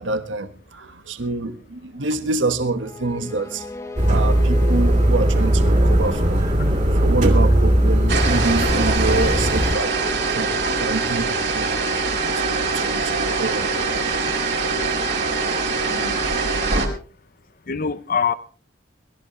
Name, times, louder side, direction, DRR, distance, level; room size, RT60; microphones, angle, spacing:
voice 1, 0.0-3.7 4.1-6.5 6.9-10.0 10.3-11.8 12.3-13.7 14.1-15.0 15.8-16.2 16.5-16.7, right 3 dB, 90° right, 1.5 m, -27 dB
sound 1, 2.8-11.2, left 2 dB, 15° left, 1.2 m, -35 dB
sound 2, 4.0-9.7, right 1 dB, 40° right, 2.9 m, -18 dB
sound 3, 8.1-16.9, right 4 dB, 65° right, 3.9 m, -23 dB
voice 2, 17.7-18.3, left 6 dB, 50° left, 0.8 m, -25 dB
22.0 x 14.0 x 3.2 m
head